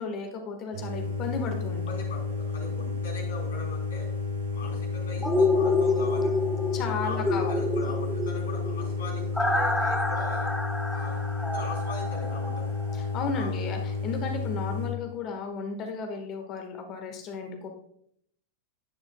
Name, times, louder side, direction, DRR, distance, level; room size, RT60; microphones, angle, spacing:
voice 1, 0.0-1.8 6.7-7.5 13.1-17.7, left 5 dB, 35° left, 4 dB, 1.5 m, -34 dB
sound 1, 0.7-14.9, left 4 dB, 60° right, 4.1 m, -31 dB
voice 2, 1.9-4.1 4.5-6.4 7.0-10.5 10.9-12.8 13.4-13.7, left 2 dB, 60° left, 0 dB, 3.3 m, -41 dB
sound 2, 5.2-13.1 13.5-13.6, left 2 dB, 5° left, 1.0 m, -28 dB
11.0 x 9.6 x 2.2 m, 0.70 s
figure-of-eight pair, 90°, 0 cm